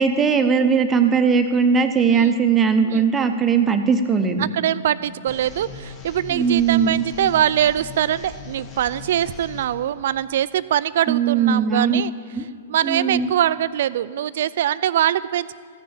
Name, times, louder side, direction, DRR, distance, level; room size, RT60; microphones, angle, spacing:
voice 1, 0.0-4.5 6.3-7.0 11.1-12.0 12.3-12.4 12.8-13.3, right 6 dB, 20° right, 7 dB, 0.8 m, -19 dB
voice 2, 4.4-12.1 12.7-15.5, right 11 dB, 60° right, 17 dB, 0.3 m, -23 dB
sound 1, 5.3-9.7, left 4 dB, 35° left, 1.6 m, -39 dB
14.5 x 6.3 x 7.1 m, 2.2 s
hypercardioid pair, 115°, 0 cm